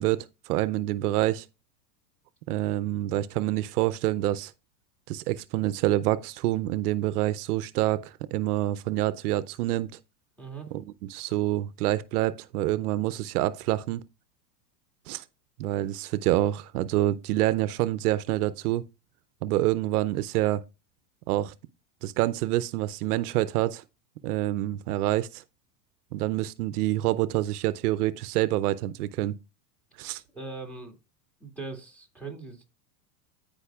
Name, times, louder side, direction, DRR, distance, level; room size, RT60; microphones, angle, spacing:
voice 1, 0.0-1.5 2.5-4.5 5.1-9.9 10.7-10.8 11.1-14.0 15.1-15.2 15.6-18.8 19.4-20.6 21.3-21.5 22.0-23.8 24.2-25.4 26.1-29.3 30.0-30.2, right 15 dB, 80° right, 0.6 m, -27 dB
voice 2, 10.4-10.7 30.3-31.0 31.4-32.6, right 4 dB, 5° left, 2.2 m, -40 dB
15.0 x 5.3 x 2.3 m
supercardioid pair, 115°, 45 cm